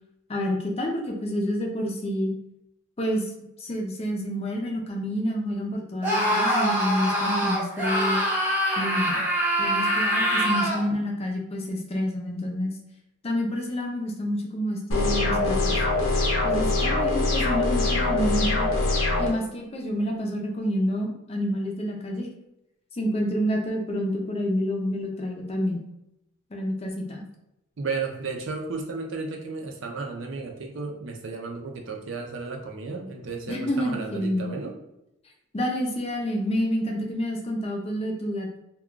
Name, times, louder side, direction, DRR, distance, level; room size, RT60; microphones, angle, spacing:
voice 1, 0.3-2.3 3.0-8.2 8.8-9.2 9.6-12.7 13.2-15.8 16.4-18.7 19.2-22.3 22.9-25.8 26.5-27.2 33.5-34.5 35.5-38.6, equal, 30° left, 0 dB, 0.5 m, -28 dB
Screaming, 6.0-10.9, equal, 10° right, 0.8 m, -24 dB
sound 1, 14.9-19.3, left 2 dB, 80° left, 0.9 m, -23 dB
voice 2, 27.8-34.8, right 4 dB, 65° right, 1 dB, 0.5 m, -33 dB
2.3 x 2.2 x 3.7 m, 0.86 s
head